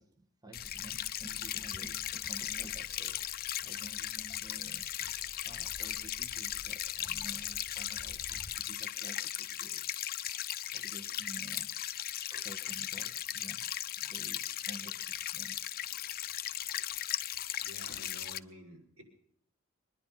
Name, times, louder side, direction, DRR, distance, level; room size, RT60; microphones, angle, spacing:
voice 1, 0.0-5.1 5.4-9.9 10.7-11.7 12.3-13.6 14.0-15.9, right 1 dB, 15° right, 5 dB, 1.3 m, -52 dB
sound 1, 0.5-18.4, left 12 dB, 45° left, 0.6 m, -37 dB
sound 2, 0.5-8.5, left 1 dB, 10° left, 3.5 m, -54 dB
voice 2, 17.6-19.0, equal, 80° right, 0 dB, 5.9 m, -51 dB
24.0 x 10.5 x 5.7 m, 0.67 s
head